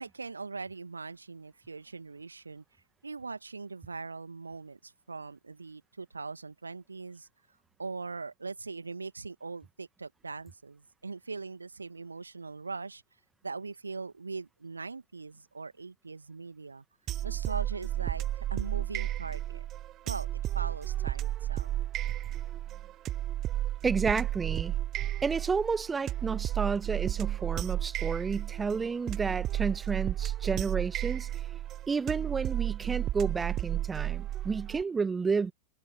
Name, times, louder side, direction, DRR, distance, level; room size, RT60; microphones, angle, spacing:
voice 1, 0.0-2.6 3.0-7.3 7.8-13.0 13.4-16.8 17.2-19.7 20.0-20.3 20.5-21.7, right 4 dB, 80° right, 2.1 m, -41 dB
sound 1, 17.1-34.8, right 13 dB, 30° right, 0.6 m, -33 dB
voice 2, 23.8-24.7 25.2-31.3 31.9-35.5, right 5 dB, 15° right, 1.6 m, -31 dB
figure-of-eight pair, 90°, 0 cm